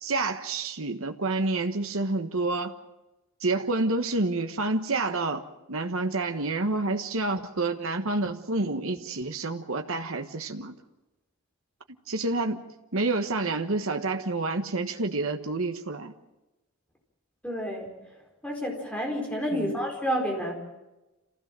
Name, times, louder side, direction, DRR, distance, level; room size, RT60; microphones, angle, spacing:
voice 1, 0.0-2.7 3.4-10.7 12.1-12.6 12.9-16.1 19.5-19.7, right 2 dB, 65° right, 5 dB, 1.3 m, -28 dB
voice 2, 17.4-17.9 18.4-20.5, equal, 5° left, 1 dB, 4.4 m, -29 dB
27.0 x 16.5 x 7.6 m, 1.1 s
head